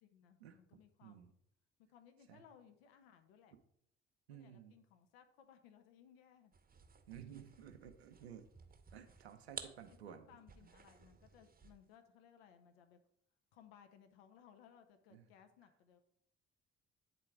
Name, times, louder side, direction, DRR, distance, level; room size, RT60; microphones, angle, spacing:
voice 1, 0.0-1.4 1.9-3.6 4.3-6.5 9.6-13.0 13.5-16.0, left 8 dB, 70° left, 7 dB, 0.7 m, -64 dB
voice 2, 1.0-1.3 2.3-2.4 4.3-4.7 7.1-8.5 8.9-10.3 10.6-10.7 15.1-15.3, right 9 dB, 80° right, 6 dB, 0.6 m, -54 dB
sound 1, 6.5-11.9, right 6 dB, 30° right, 0.8 m, -55 dB
9.1 x 3.8 x 4.5 m, 0.71 s
figure-of-eight pair, 45°, 31 cm